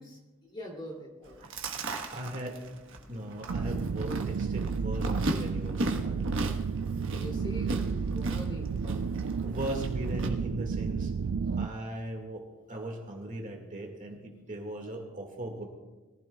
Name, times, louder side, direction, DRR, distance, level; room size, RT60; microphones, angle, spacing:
voice 1, 0.0-1.4 7.1-8.7 11.5-11.6, left 1 dB, 25° left, 0 dB, 2.8 m, -43 dB
Chewing mastication, 1.2-10.3, right 1 dB, 65° right, 1.3 m, -37 dB
voice 2, 1.4-2.6 3.1-6.4 8.8-9.0 9.4-11.1 11.6-15.6, right 1 dB, 40° right, 2 dB, 1.9 m, -39 dB
sound 1, 3.5-11.7, right 5 dB, 85° right, 0.4 m, -32 dB
22.0 x 15.0 x 2.3 m, 1.2 s
head